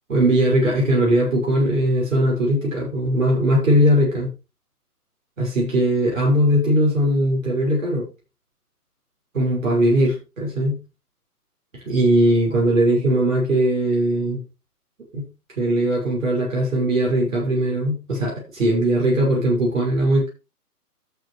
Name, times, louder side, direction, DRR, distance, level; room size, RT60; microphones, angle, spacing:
voice 1, 0.1-4.3 5.4-8.0 9.3-10.8 11.7-14.4 15.1-15.3 15.6-20.3, right 1 dB, 55° right, 6.6 m, -19 dB
13.5 x 7.8 x 3.2 m
figure-of-eight pair, 140°, 46 cm